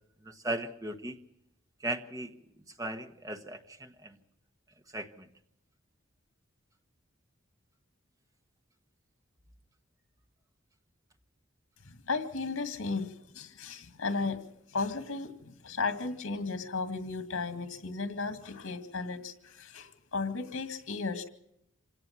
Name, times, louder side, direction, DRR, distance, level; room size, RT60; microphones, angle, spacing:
voice 1, 0.3-1.2 1.8-2.3 2.8-4.1 4.9-5.2, right 1 dB, 15° right, 5 dB, 1.3 m, -37 dB
voice 2, 11.8-21.3, left 4 dB, 85° left, 7 dB, 2.1 m, -35 dB
26.0 x 17.5 x 5.9 m, 0.76 s
head